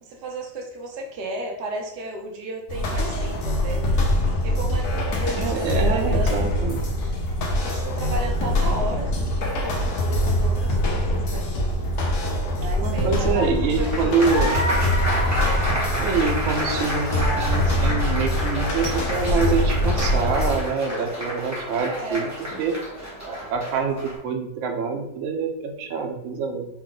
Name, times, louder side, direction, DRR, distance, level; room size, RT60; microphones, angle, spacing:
voice 1, 0.0-4.0 4.4-6.4 7.5-11.5 12.2-14.3 21.8-22.3, right 1 dB, 65° right, 1 dB, 1.2 m, -34 dB
sound 1, 2.7-20.6, left 1 dB, 60° left, 1.2 m, -24 dB
voice 2, 5.3-6.8 12.8-14.6 16.0-22.8 23.2-26.7, right 5 dB, 85° right, 4 dB, 0.6 m, -26 dB
Applause, 13.8-24.2, equal, 15° right, 0.7 m, -29 dB
4.5 x 2.2 x 3.8 m, 0.84 s
omnidirectional pair, 2.0 m